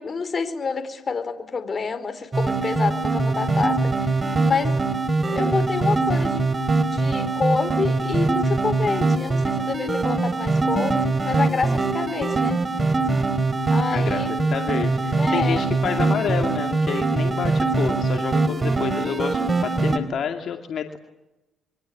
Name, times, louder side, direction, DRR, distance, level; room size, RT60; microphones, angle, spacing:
voice 1, 0.0-4.8 5.3-6.5 6.8-12.6 13.7-14.3 15.2-15.6, left 5 dB, 35° left, 9 dB, 4.5 m, -28 dB
sound 1, 2.3-20.0, right 3 dB, 25° right, 4.3 m, -22 dB
voice 2, 14.5-21.0, left 7 dB, 60° left, 4 dB, 2.6 m, -29 dB
28.5 x 24.5 x 8.7 m, 0.98 s
cardioid pair, 90°, 0 cm